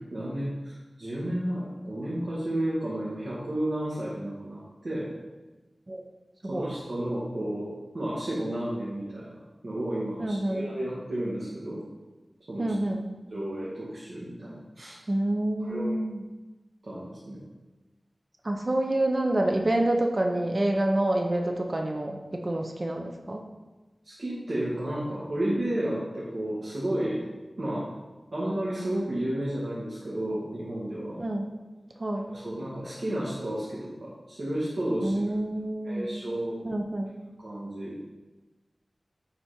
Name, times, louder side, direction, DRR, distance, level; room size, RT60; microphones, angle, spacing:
voice 1, 0.1-5.1 6.5-11.8 12.5-12.7 13.3-15.0 15.6-15.9 16.8-17.4 24.0-27.2 27.6-27.9 28.3-31.2 32.3-35.2 35.8-36.6 37.4-38.0, right 1 dB, 65° right, -8 dB, 2.1 m, -32 dB
voice 2, 10.2-10.6 12.6-13.1 15.1-16.2 18.4-23.4 31.2-31.5 32.0-32.3 35.0-36.1 36.6-37.1, right 1 dB, 40° right, 2 dB, 0.9 m, -27 dB
10.5 x 4.3 x 4.4 m, 1.2 s
wide cardioid pair, 60°, 0 cm